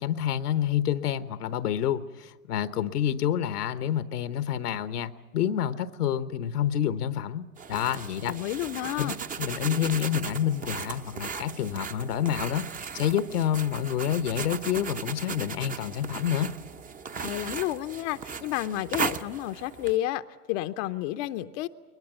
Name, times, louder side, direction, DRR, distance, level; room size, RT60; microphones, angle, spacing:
voice 1, 0.0-8.4 9.0-9.1 9.4-12.7 12.9-16.5, left 10 dB, 75° left, 14 dB, 1.1 m, -28 dB
sound 1, 7.6-20.0, right 6 dB, 20° right, 0.7 m, -37 dB
voice 2, 8.3-9.2 17.2-21.7, left 15 dB, 50° left, 10 dB, 0.8 m, -31 dB
22.0 x 20.5 x 9.2 m, 1.2 s
hypercardioid pair, 90°, 46 cm